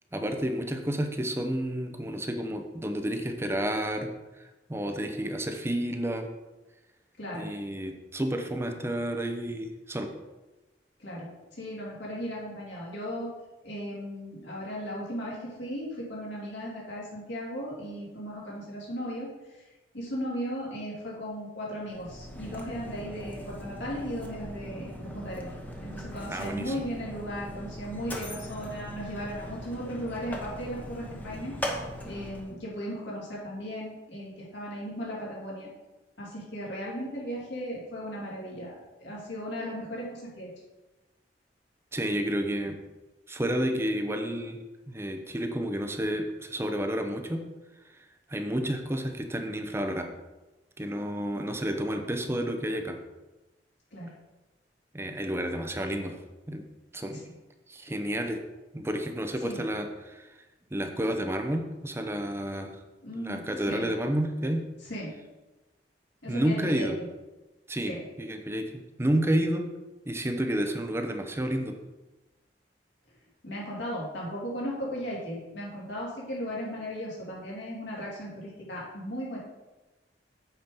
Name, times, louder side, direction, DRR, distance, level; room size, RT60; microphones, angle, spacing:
voice 1, 0.1-4.1 4.4-6.3 7.3-10.1 26.3-26.7 41.9-42.8 43.3-44.6 44.9-47.4 48.3-50.1 50.8-53.0 54.9-56.2 56.5-56.6 56.9-57.2 57.7-58.4 58.7-60.3 60.7-62.8 63.2-64.6 66.3-67.0 67.7-69.7 70.1-71.7, right 1 dB, 15° right, 5 dB, 0.7 m, -30 dB
voice 2, 7.2-7.5 11.0-13.3 13.6-19.7 19.9-25.5 25.8-31.7 32.0-35.7 36.2-40.5 53.9-54.1 57.1-57.2 59.4-59.6 63.0-63.9 64.9-65.1 66.2-67.1 67.8-68.0 73.4-79.4, equal, 75° left, -5 dB, 3.2 m, -36 dB
Mechanisms, 21.8-32.6, equal, 10° left, 1.0 m, -40 dB
8.1 x 5.2 x 5.4 m, 1.1 s
head